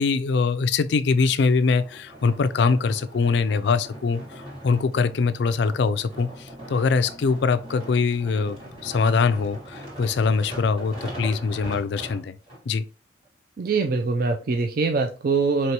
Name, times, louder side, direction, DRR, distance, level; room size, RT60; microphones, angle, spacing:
voice 1, 0.0-12.4 12.7-12.8, left 4 dB, 60° left, 0.4 m, -23 dB
sound 1, 1.6-12.6 13.2-13.3, equal, 30° right, 1.7 m, -41 dB
voice 2, 13.6-15.7, right 4 dB, 50° right, 0.3 m, -23 dB
4.6 x 3.0 x 2.9 m
head